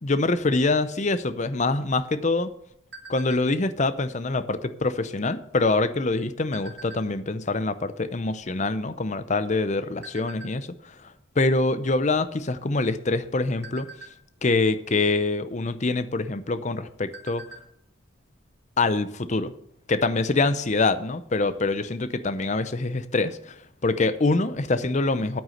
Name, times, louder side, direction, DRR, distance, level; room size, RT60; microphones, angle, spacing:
voice 1, 0.0-2.5 3.1-10.7 11.4-13.9 14.4-17.4 18.8-19.5 19.9-23.5 23.8-25.4, left 3 dB, 35° left, 12 dB, 0.6 m, -25 dB
sound 1, 2.6-3.7 4.2-4.5 4.7-5.1 5.8-7.4 8.0-8.1 8.3-9.5 10.0-10.5 11.0-11.3 11.6-11.8 12.3-12.8 13.2-14.6 15.7-15.8 16.3-16.4 16.7-17.8 18.1-18.2 18.5-18.6, right 2 dB, 55° right, 2.2 m, -45 dB
9.5 x 9.1 x 6.5 m, 0.73 s
head